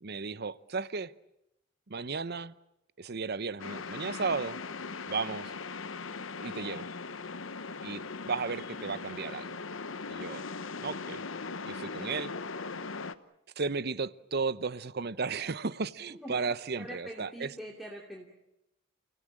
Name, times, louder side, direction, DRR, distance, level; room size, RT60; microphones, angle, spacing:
voice 1, 0.0-1.1 1.9-2.5 3.0-4.6 5.1-5.5 6.4-6.9 7.8-9.6 10.1-10.4 10.8-11.2 11.7-12.3 13.6-17.5, right 4 dB, 55° right, 0.8 m, -34 dB
sound 1, 3.6-13.1, left 4 dB, 75° left, 1.0 m, -39 dB
voice 2, 10.5-11.1 16.1-16.4 16.8-18.3, right 1 dB, ahead, 2.8 m, -45 dB
30.0 x 17.0 x 8.8 m
head